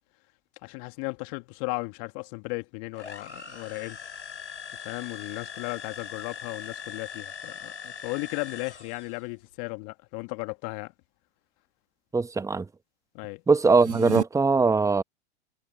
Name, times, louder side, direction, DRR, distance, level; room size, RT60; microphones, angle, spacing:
voice 1, 0.6-4.0 4.8-10.9 13.1-13.4, left 34 dB, 45° left, 1.8 m, -35 dB
sound 1, 2.9-9.3, left 7 dB, 85° left, 3.2 m, -41 dB
voice 2, 12.1-12.7 13.5-15.0, right 4 dB, 10° right, 1.1 m, -21 dB
sound 2, 13.6-14.2, right 7 dB, 90° right, 0.9 m, -31 dB
figure-of-eight pair, 95°, 33 cm